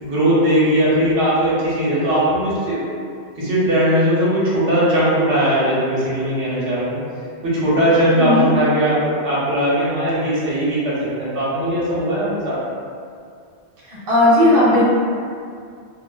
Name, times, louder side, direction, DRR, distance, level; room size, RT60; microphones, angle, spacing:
voice 1, 0.0-2.8 3.4-6.9 7.4-12.6, equal, 80° right, -9 dB, 1.0 m, -19 dB
voice 2, 8.1-8.5 13.8-14.8, left 1 dB, 55° right, -8 dB, 0.8 m, -15 dB
2.5 x 2.3 x 2.2 m, 2.3 s
omnidirectional pair, 1.2 m